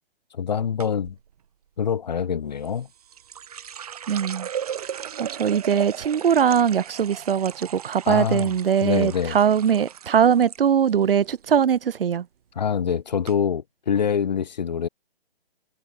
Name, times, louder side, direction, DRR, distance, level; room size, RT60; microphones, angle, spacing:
voice 1, 0.3-1.2 1.8-2.9 8.1-8.5 8.8-9.4 12.6-14.9, left 7 dB, 45° left, 0.6 m, -25 dB
sound 1, 0.8-1.2 2.6-10.6 10.9-11.5 11.8-12.2 12.8-12.9 13.2-13.3, right 9 dB, 40° right, 1.5 m, -37 dB
voice 2, 4.1-4.5 5.2-12.3, right 8 dB, 65° right, 0.6 m, -21 dB
hypercardioid pair, 165°, 31 cm